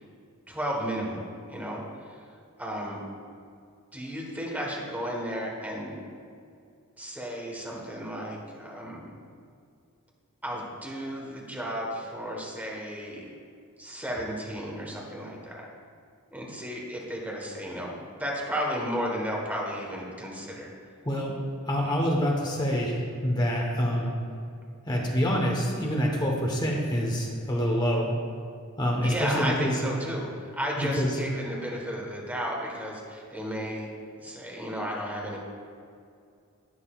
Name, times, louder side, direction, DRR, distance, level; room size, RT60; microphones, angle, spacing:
voice 1, 0.5-2.2 2.6-3.0 3.9-5.9 7.0-9.0 10.4-13.3 13.8-15.6 16.3-20.7 29.0-33.9 34.2-35.4, equal, 10° right, -2 dB, 1.4 m, -33 dB
voice 2, 21.0-21.4 21.7-24.1 24.9-28.2 28.8-29.8 30.8-31.2, equal, 20° left, -1 dB, 1.1 m, -26 dB
11.0 x 9.9 x 2.4 m, 2.3 s
head